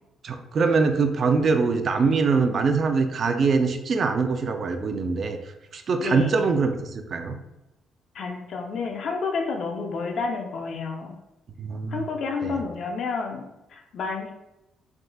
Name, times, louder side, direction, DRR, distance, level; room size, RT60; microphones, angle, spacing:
voice 1, 0.2-5.4 5.7-7.4 11.6-12.0 12.4-12.6, right 4 dB, 50° right, 6 dB, 0.5 m, -23 dB
voice 2, 6.0-6.4 8.1-11.2 11.9-14.3, left 4 dB, 65° left, 3 dB, 0.7 m, -30 dB
3.8 x 3.6 x 2.3 m, 0.92 s
cardioid pair, 90°, 0 cm